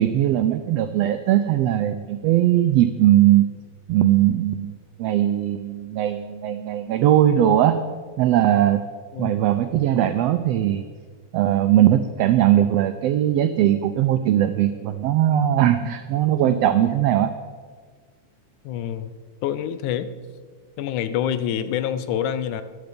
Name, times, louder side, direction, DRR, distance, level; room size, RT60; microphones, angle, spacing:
voice 1, 0.0-3.4 3.9-4.7 5.0-7.8 8.2-8.8 9.2-10.9 11.3-17.3, right 12 dB, 85° right, 9 dB, 1.4 m, -19 dB
voice 2, 18.6-19.1 19.4-20.1 20.8-22.6, left 9 dB, 85° left, 12 dB, 2.2 m, -26 dB
14.5 x 10.5 x 5.2 m, 1.6 s
omnidirectional pair, 3.5 m